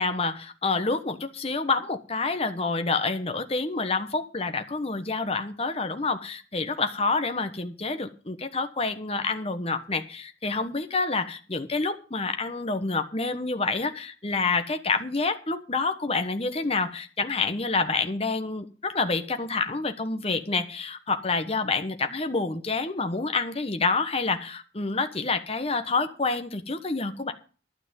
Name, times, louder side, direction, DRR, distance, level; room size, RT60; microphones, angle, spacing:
voice 1, 0.0-27.3, left 3 dB, 30° left, 1.2 m, -28 dB
12.5 x 6.0 x 8.9 m
head